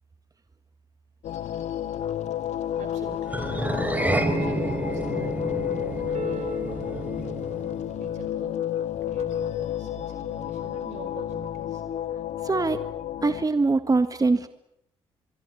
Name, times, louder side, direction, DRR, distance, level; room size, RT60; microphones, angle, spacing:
sound 1, 1.2-13.4, left 10 dB, 75° left, 1.2 m, -31 dB
voice 1, 2.8-3.5 4.0-7.4 8.0-8.6 9.1-11.8, right 6 dB, 75° right, 9 dB, 5.2 m, -43 dB
sound 2, 3.3-7.8, right 1 dB, 15° right, 4.3 m, -29 dB
sound 3, 6.1-9.2, right 5 dB, 60° right, 2.2 m, -41 dB
voice 2, 12.4-12.8 13.2-14.5, right 3 dB, 30° right, 10 dB, 1.8 m, -22 dB
24.5 x 24.0 x 8.8 m, 0.77 s
supercardioid pair, 50°, 12 cm